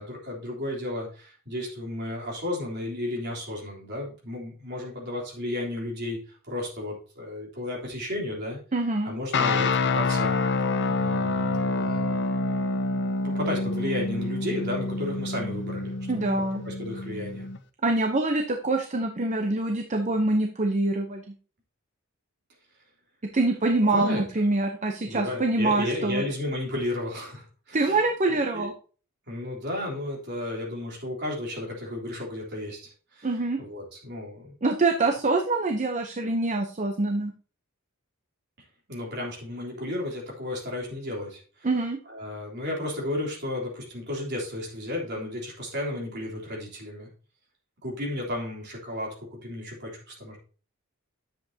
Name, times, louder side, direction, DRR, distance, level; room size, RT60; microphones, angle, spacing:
voice 1, 0.0-8.6 9.0-10.4 10.9-12.2 13.2-16.2 16.6-17.5 23.9-24.2 25.1-28.7 29.3-33.3 33.6-34.6 38.9-41.7 42.1-47.1 47.8-50.4, left 1 dB, 50° right, -2 dB, 3.4 m, -33 dB
voice 2, 8.7-9.1 16.1-16.6 17.8-21.3 23.3-26.2 27.7-28.7 33.2-33.6 34.6-37.3 41.6-42.0, right 2 dB, 35° right, 4 dB, 0.7 m, -25 dB
sound 1, 9.3-17.6, left 3 dB, 55° left, 0.7 m, -27 dB
10.0 x 7.7 x 2.8 m, 0.38 s
head